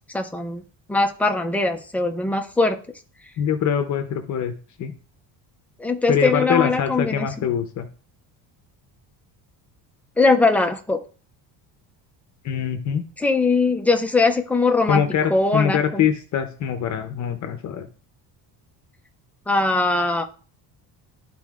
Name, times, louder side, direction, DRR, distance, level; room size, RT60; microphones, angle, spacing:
voice 1, 0.1-0.6 0.9-2.8 5.8-7.5 10.2-11.0 13.2-15.0 15.3-16.1 19.5-20.2, left 3 dB, 5° left, 4 dB, 0.3 m, -21 dB
voice 2, 3.4-4.5 4.8-4.9 6.1-7.9 12.4-13.0 14.9-17.9, left 8 dB, 45° left, 6 dB, 0.7 m, -23 dB
12.5 x 4.1 x 2.4 m, 0.39 s
cardioid pair, 165°, 41 cm